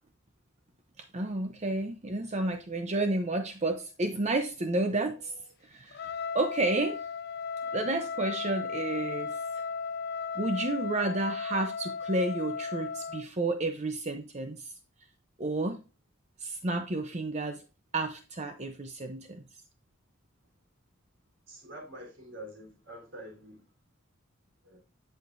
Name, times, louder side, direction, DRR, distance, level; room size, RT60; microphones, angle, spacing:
voice 1, 1.1-5.4 5.7-7.0 7.7-9.4 10.3-14.7 15.4-15.8 16.4-17.6 17.9-19.4, right 2 dB, 35° right, 0.7 m, -31 dB
Trumpet, 5.9-13.2, left 5 dB, 50° left, 0.5 m, -36 dB
voice 2, 21.5-23.7 24.6-24.8, right 1 dB, 60° right, 3.6 m, -46 dB
10.5 x 6.6 x 2.6 m
head